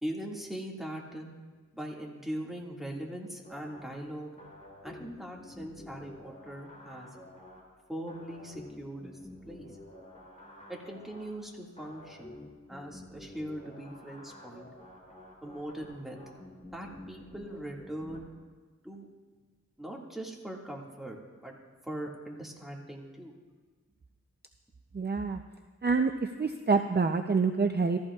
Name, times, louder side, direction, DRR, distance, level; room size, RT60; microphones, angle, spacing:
voice 1, 0.0-1.3 1.7-4.3 4.8-7.1 7.9-9.2 9.4-9.7 10.7-12.4 12.7-14.7 15.4-16.2 16.7-18.3 18.8-19.1 19.8-21.6 21.8-23.3, right 1 dB, ahead, -2 dB, 2.0 m, -40 dB
sound 1, 3.4-18.2, left 1 dB, 25° left, 3.0 m, -50 dB
voice 2, 24.9-25.4 25.8-28.0, right 4 dB, 35° right, 6 dB, 0.5 m, -27 dB
15.0 x 14.0 x 2.4 m, 1.4 s
wide cardioid pair, 45°, 30 cm